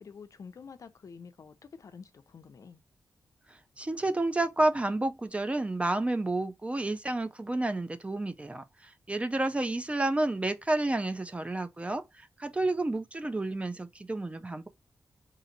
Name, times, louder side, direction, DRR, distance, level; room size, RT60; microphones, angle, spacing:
voice 1, 0.0-2.8, left 5 dB, 55° left, 0.5 m, -48 dB
voice 2, 3.5-14.7, right 2 dB, 20° right, 0.4 m, -30 dB
4.0 x 2.6 x 3.9 m
wide cardioid pair, 150°, 7 cm